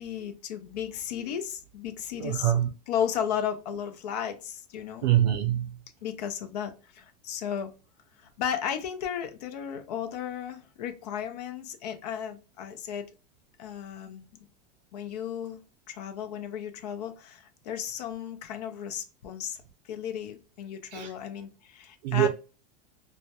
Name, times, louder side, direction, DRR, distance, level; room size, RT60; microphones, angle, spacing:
voice 1, 0.0-2.5 2.9-5.1 6.0-7.7 8.4-13.1 13.6-14.2 14.9-15.6 15.9-19.6 19.9-22.3, left 9 dB, 70° left, 0.5 m, -34 dB
voice 2, 2.2-2.7 5.0-5.8 20.9-21.1 22.0-22.3, right 12 dB, 80° right, 0.4 m, -24 dB
2.2 x 2.1 x 2.7 m
supercardioid pair, 180°, 21 cm